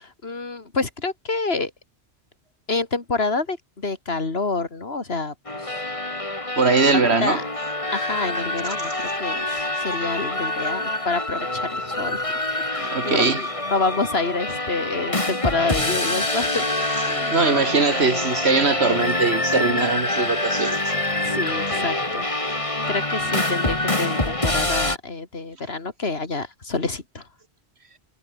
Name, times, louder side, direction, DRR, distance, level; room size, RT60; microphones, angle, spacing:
voice 1, 0.0-1.7 2.7-5.8 6.9-7.4 7.9-12.2 12.7-16.7 17.0-17.3 21.2-22.3 22.9-27.2, left 3 dB, 65° left, 3.1 m, -28 dB
sound 1, 5.5-25.0, left 2 dB, 30° left, 3.0 m, -26 dB
voice 2, 6.6-7.4 12.8-13.5 17.0-20.9, right 4 dB, 70° right, 2.3 m, -21 dB
omnidirectional pair, 1.1 m